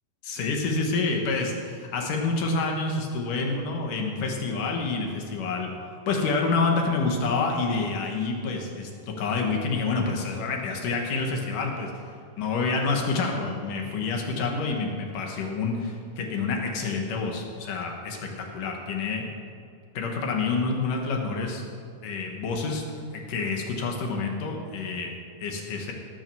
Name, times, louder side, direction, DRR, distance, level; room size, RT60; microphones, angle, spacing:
voice 1, 0.2-5.7 6.1-11.9 12.4-19.3 19.9-21.6 22.0-22.8 23.1-25.1 25.4-25.9, left 4 dB, 65° left, 1 dB, 2.7 m, -28 dB
18.0 x 6.3 x 6.9 m, 2.4 s
omnidirectional pair, 4.5 m